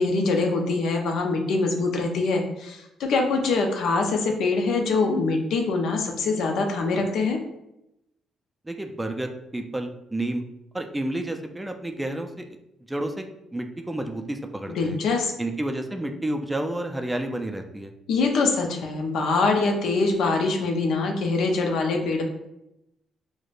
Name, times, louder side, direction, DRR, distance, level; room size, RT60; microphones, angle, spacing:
voice 1, 0.0-7.4 14.7-15.3 18.1-22.2, left 3 dB, 80° left, 3 dB, 0.5 m, -24 dB
voice 2, 8.7-10.4 10.7-12.3 12.9-15.0 15.4-17.9, right 1 dB, 10° right, 5 dB, 0.4 m, -30 dB
4.7 x 2.1 x 2.5 m, 0.85 s
cardioid pair, 90°, 0 cm